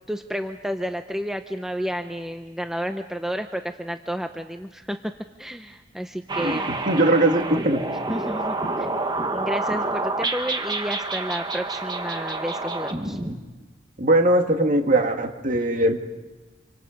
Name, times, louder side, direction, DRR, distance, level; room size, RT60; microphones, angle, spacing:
voice 1, 0.1-5.0 5.4-6.6 8.1-8.9 9.3-13.2, equal, ahead, 6 dB, 0.6 m, -31 dB
sound 1, 6.3-13.4, right 2 dB, 20° right, 1.6 m, -28 dB
voice 2, 6.4-7.8 14.0-16.0, right 1 dB, 40° right, 4 dB, 1.9 m, -20 dB
26.5 x 25.5 x 5.2 m, 1.2 s
head